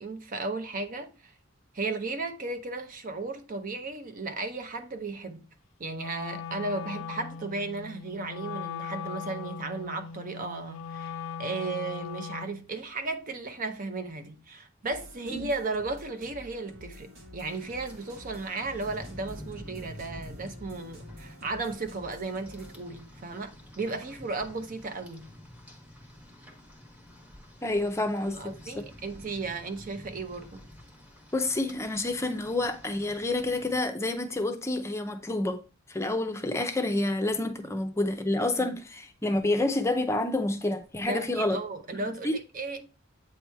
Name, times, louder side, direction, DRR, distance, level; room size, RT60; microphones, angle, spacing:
voice 1, 0.0-1.3 1.7-5.4 5.8-25.3 28.2-30.7 38.6-38.7 41.0-42.8, right 3 dB, 45° right, 0.6 m, -35 dB
Wind instrument woodwind instrument, 5.9-12.7, left 7 dB, 85° left, 0.4 m, -39 dB
sound 1, 14.9-22.8, left 1 dB, 75° right, 1.6 m, -49 dB
Rain, 17.5-33.8, left 1 dB, 5° right, 1.1 m, -49 dB
voice 2, 27.6-28.5 31.3-35.6 35.9-41.6 42.1-42.3, left 2 dB, 15° left, 0.6 m, -28 dB
8.3 x 3.0 x 4.5 m
head